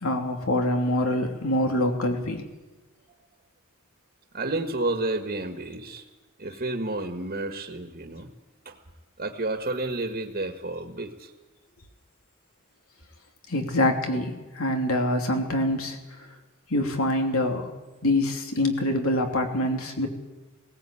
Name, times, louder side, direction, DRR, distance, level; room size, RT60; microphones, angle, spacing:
voice 1, 0.0-2.4 13.5-16.3 16.7-17.7 18.0-20.1, left 1 dB, 80° left, 4 dB, 3.1 m, -25 dB
voice 2, 4.3-6.0 6.4-8.3 8.6-8.8 9.2-11.3, right 2 dB, 45° right, 5 dB, 1.6 m, -30 dB
18.5 x 17.5 x 8.6 m, 1.2 s
head